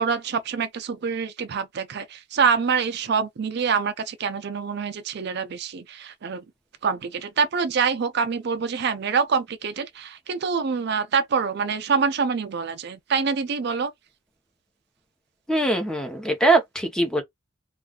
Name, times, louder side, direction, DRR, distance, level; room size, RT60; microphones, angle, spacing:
voice 1, 0.0-6.4 6.8-13.9, right 5 dB, 60° right, 0.4 m, -25 dB
voice 2, 15.5-17.2, right 2 dB, 5° left, 0.8 m, -22 dB
2.5 x 2.3 x 3.7 m
head